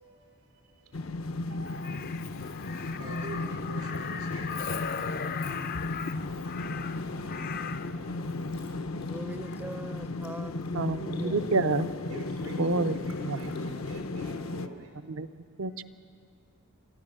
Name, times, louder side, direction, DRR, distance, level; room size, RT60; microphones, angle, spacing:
sound 1, 0.9-14.7, left 2 dB, 70° left, 0.8 m, -35 dB
Crow, 1.6-8.0 9.4-9.6, left 7 dB, 40° left, 0.5 m, -38 dB
voice 1, 3.0-5.1 12.1-14.9, right 3 dB, 85° right, 2 dB, 4.1 m, -45 dB
sound 2, 8.3-13.6, left 4 dB, 90° left, 4.6 m, -58 dB
voice 2, 9.1-11.5, right 1 dB, 10° right, 12 dB, 0.5 m, -42 dB
voice 3, 10.7-11.9 12.6-12.9 13.2-13.4 15.1-15.3 15.6-15.8, right 3 dB, 70° right, 10 dB, 0.6 m, -28 dB
29.5 x 12.5 x 7.7 m, 2.2 s
head